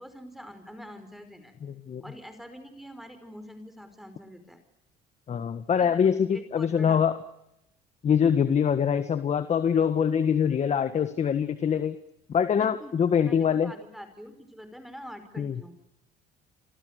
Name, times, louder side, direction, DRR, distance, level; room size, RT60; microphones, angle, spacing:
voice 1, 0.0-1.5 2.0-4.6 5.7-6.0 6.3-7.0 12.6-13.0 13.2-15.7, equal, ahead, 9 dB, 5.1 m, -45 dB
voice 2, 1.6-2.0 5.3-7.2 8.0-11.9 12.3-13.7 15.4-15.6, left 7 dB, 40° left, 11 dB, 1.7 m, -24 dB
29.5 x 26.0 x 6.7 m, 0.83 s
cardioid pair, 110°, 17 cm